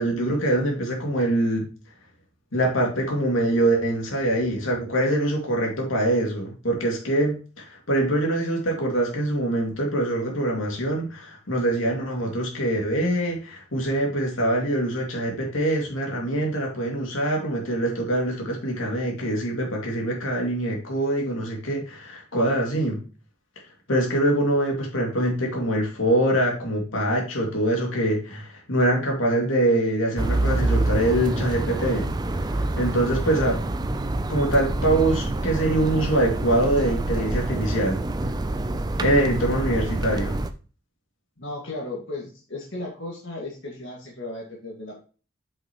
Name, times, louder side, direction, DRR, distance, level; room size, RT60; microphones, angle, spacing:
voice 1, 0.0-1.7 2.5-23.0 23.9-32.1 32.5-33.6 34.3-38.0 39.0-40.4, right 1 dB, 85° left, 0 dB, 2.4 m, -24 dB
sound 1, 30.2-40.5, right 2 dB, 20° right, 0.4 m, -26 dB
voice 2, 41.4-45.0, left 2 dB, 65° left, -3 dB, 2.0 m, -35 dB
7.3 x 6.0 x 3.0 m, 0.37 s
head